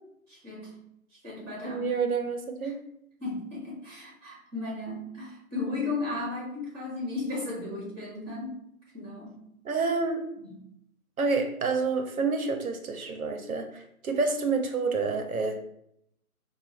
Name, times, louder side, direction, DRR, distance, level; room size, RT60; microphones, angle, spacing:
voice 1, 0.3-0.8 1.2-1.9 2.6-2.7 3.2-8.6 8.9-9.4 10.4-10.6, left 3 dB, 15° right, -4 dB, 1.0 m, -35 dB
voice 2, 1.6-2.8 9.6-10.2 11.2-15.5, right 4 dB, 75° right, 5 dB, 0.6 m, -28 dB
4.1 x 2.2 x 3.0 m, 0.76 s
figure-of-eight pair, 160°, 43 cm